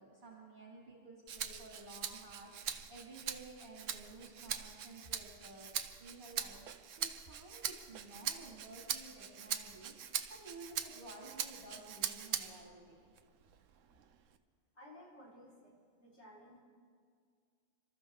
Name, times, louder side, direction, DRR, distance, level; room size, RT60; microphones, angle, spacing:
voice 1, 0.0-5.7 6.0-13.1, right 2 dB, 40° right, -5 dB, 2.8 m, -53 dB
Rattle (instrument), 1.3-12.7 13.2-14.4, right 8 dB, 75° right, 1.1 m, -42 dB
voice 2, 14.7-16.6, left 1 dB, 60° left, -6 dB, 4.9 m, -56 dB
29.0 x 13.5 x 3.7 m, 2.1 s
omnidirectional pair, 1.3 m